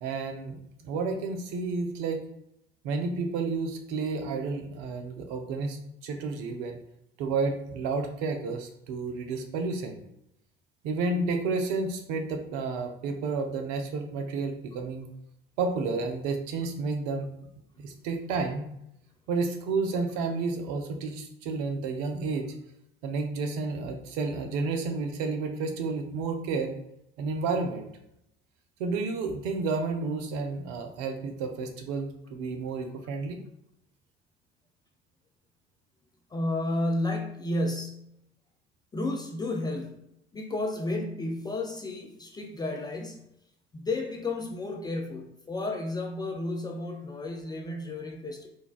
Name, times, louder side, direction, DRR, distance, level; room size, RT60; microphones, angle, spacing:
voice 1, 0.0-2.2 2.8-6.8 7.2-10.0 10.8-15.1 15.6-17.3 17.8-18.7 19.3-22.5 23.0-26.8 27.2-27.9 28.8-33.4, right 4 dB, 60° right, 5 dB, 0.6 m, -31 dB
voice 2, 36.3-38.2 38.9-43.3 43.7-48.5, left 2 dB, 15° left, 2 dB, 0.3 m, -32 dB
3.9 x 2.3 x 2.3 m, 0.78 s
figure-of-eight pair, 60°, 29 cm